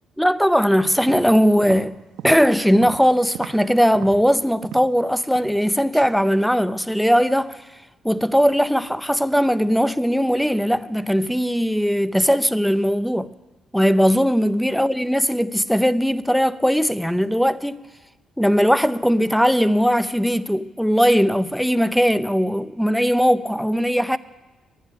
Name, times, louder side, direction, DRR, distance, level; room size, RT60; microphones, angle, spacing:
voice 1, 0.2-2.0 2.2-7.6 8.0-13.3 13.7-17.8 18.4-24.2, equal, ahead, 0.5 m, -19 dB
sound 1, 0.9-3.7 3.9-5.0 5.3-5.7 5.9-6.1, right 9 dB, 85° right, 1.0 m, -38 dB
12.0 x 10.5 x 10.0 m
cardioid pair, 90°, 0 cm